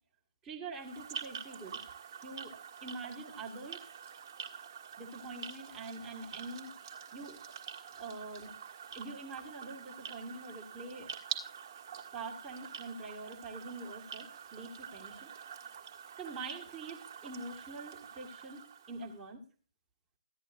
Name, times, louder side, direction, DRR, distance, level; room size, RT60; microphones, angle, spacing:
voice 1, 0.4-1.8 2.2-2.6 2.8-3.8 5.0-7.4 7.9-8.5 8.9-11.1 12.1-15.3 16.2-18.6 18.9-19.4, right 3 dB, 15° right, -2 dB, 1.6 m, -45 dB
sound 1, 0.7-19.2, right 7 dB, 35° right, 1.5 m, -46 dB
14.5 x 10.5 x 2.5 m, 0.37 s
figure-of-eight pair, 140°, 3 cm